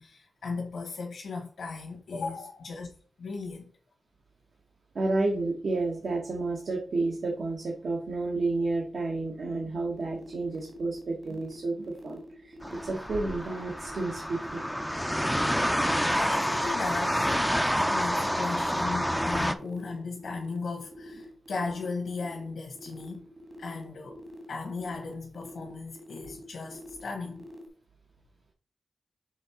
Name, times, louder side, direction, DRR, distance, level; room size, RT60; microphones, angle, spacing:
voice 1, 0.0-2.9 3.2-3.7 15.9-23.2 23.6-27.4, left 4 dB, 80° left, 1.4 m, -37 dB
voice 2, 4.9-14.6, right 3 dB, 70° right, 1.4 m, -31 dB
sound 1, 9.9-27.7, equal, 45° right, 1.5 m, -47 dB
sound 2, 12.6-19.5, equal, ahead, 0.5 m, -28 dB
6.5 x 3.8 x 4.3 m
wide cardioid pair, 120°, 0 cm